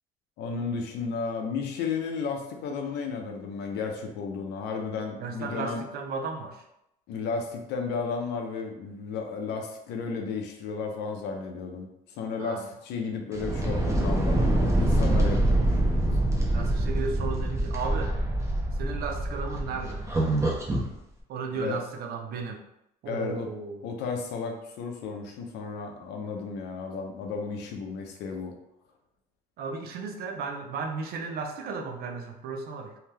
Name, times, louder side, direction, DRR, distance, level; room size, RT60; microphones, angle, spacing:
voice 1, 0.4-5.8 7.1-15.8 21.6-21.8 23.1-23.5 23.8-28.5, left 5 dB, 85° left, 3 dB, 0.6 m, -33 dB
voice 2, 5.2-6.6 12.4-12.7 16.5-18.2 18.7-20.0 21.3-22.6 23.0-23.8 29.6-32.9, right 4 dB, 65° right, 4 dB, 0.5 m, -34 dB
sound 1, 13.3-20.9, right 1 dB, 15° right, 0.6 m, -25 dB
2.8 x 2.2 x 3.2 m, 0.82 s
cardioid pair, 110°, 17 cm